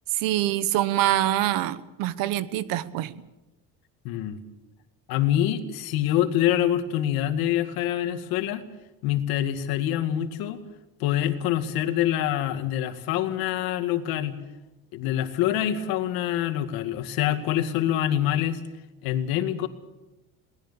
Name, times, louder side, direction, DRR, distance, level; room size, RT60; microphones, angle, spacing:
voice 1, 0.2-3.1, right 14 dB, 70° right, 16 dB, 1.2 m, -25 dB
voice 2, 4.0-4.4 5.1-8.6 9.0-10.6 11.0-14.4 14.9-18.6 19.0-19.7, left 11 dB, 85° left, 8 dB, 2.2 m, -25 dB
22.5 x 19.0 x 7.0 m, 1.0 s
cardioid pair, 175°, 35 cm